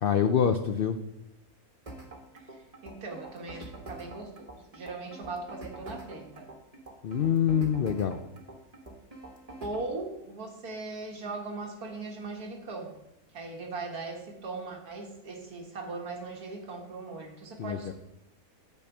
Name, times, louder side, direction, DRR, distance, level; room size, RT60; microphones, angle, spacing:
voice 1, 0.0-1.0 7.0-8.2 17.6-17.9, left 8 dB, 80° left, 8 dB, 0.5 m, -25 dB
sound 1, 1.9-9.9, right 2 dB, 25° right, 1.3 m, -45 dB
voice 2, 2.3-6.5 9.6-13.0 13.3-17.9, right 3 dB, 85° right, 1 dB, 2.0 m, -39 dB
8.2 x 4.5 x 7.1 m, 0.87 s
omnidirectional pair, 1.6 m